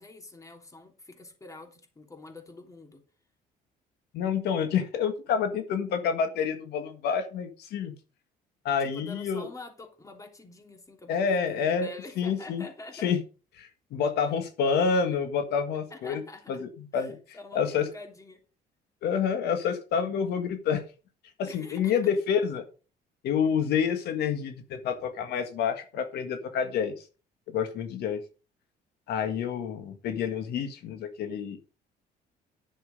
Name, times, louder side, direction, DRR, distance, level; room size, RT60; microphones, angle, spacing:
voice 1, 0.0-3.0 8.8-13.1 15.9-16.6 16.9-18.4 21.5-22.0, left 2 dB, 20° left, 3.1 m, -46 dB
voice 2, 4.1-7.9 8.6-9.5 11.1-11.9 12.2-12.7 12.9-13.2 13.6-16.2 16.5-17.9 19.0-20.8 21.4-22.6 23.2-27.1 27.5-28.2 29.1-31.6, left 6 dB, 75° left, 1.7 m, -28 dB
10.5 x 7.5 x 5.3 m
cardioid pair, 110°, 17 cm